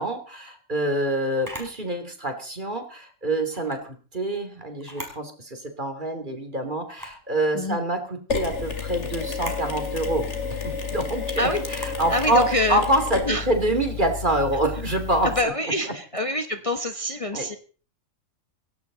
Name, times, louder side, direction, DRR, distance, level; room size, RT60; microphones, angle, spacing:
voice 1, 0.0-10.3 10.6-15.5 17.3-17.5, right 1 dB, 40° right, 6 dB, 3.0 m, -26 dB
Camera, 1.4-1.8 3.5-3.8 4.8-5.2 5.7-5.8 6.9-7.2 9.3-9.7 11.7-12.0, equal, 15° right, 4.7 m, -38 dB
Mechanisms, 8.3-15.4, left 5 dB, 65° left, 2.8 m, -31 dB
voice 2, 12.1-12.8 13.3-13.5 15.2-17.6, left 1 dB, 25° left, 7 dB, 1.1 m, -25 dB
18.0 x 17.0 x 4.0 m, 0.39 s
omnidirectional pair, 1.3 m